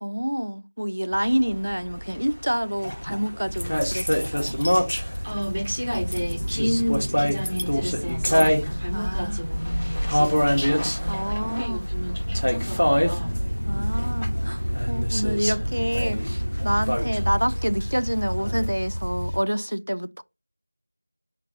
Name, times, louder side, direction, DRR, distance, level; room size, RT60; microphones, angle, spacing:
voice 1, 0.0-4.6 8.9-9.4 11.1-11.8 13.7-20.2, equal, 80° right, 0.3 m, -27 dB
sound 1, 1.1-18.7, equal, 85° left, 1.0 m, -26 dB
sound 2, 3.4-19.4, equal, 35° left, 0.8 m, -30 dB
sound 3, 3.6-5.3 5.6-6.5 6.9-8.5, equal, 60° left, 0.5 m, -37 dB
voice 2, 5.2-13.3, equal, 10° right, 0.6 m, -31 dB
2.9 x 2.5 x 3.7 m
figure-of-eight pair, 180°, 0 cm